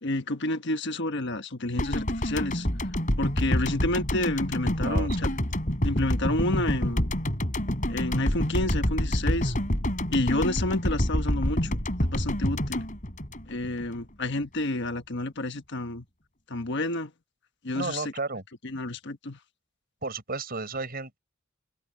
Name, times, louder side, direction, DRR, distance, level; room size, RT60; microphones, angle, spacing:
voice 1, 0.0-2.7 3.2-5.3 5.8-7.1 7.9-9.5 10.1-12.9 13.5-16.0 16.5-17.1 17.6-18.0 18.6-19.4, left 2 dB, 55° left, 1.3 m, -30 dB
sound 1, 1.8-14.0 14.2-14.4, equal, 40° left, 4.6 m, -27 dB
voice 2, 4.8-5.3 17.7-18.4 20.0-21.2, right 3 dB, 45° right, 6.4 m, -33 dB
head